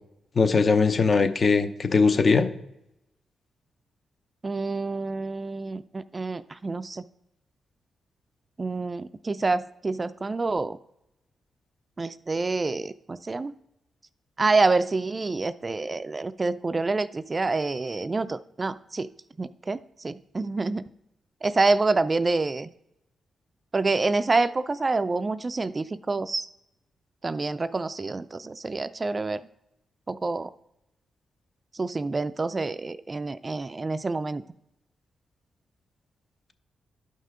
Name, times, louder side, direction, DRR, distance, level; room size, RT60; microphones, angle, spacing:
voice 1, 0.4-2.5, left 4 dB, 50° left, 9 dB, 0.8 m, -20 dB
voice 2, 4.4-7.0 8.6-10.8 12.0-13.5 14.4-19.1 19.4-20.8 21.4-22.7 23.7-26.5 27.2-29.4 30.1-30.5 31.8-34.4, right 3 dB, 35° right, 14 dB, 0.4 m, -27 dB
12.0 x 5.5 x 3.8 m, 0.86 s
supercardioid pair, 55°, 0 cm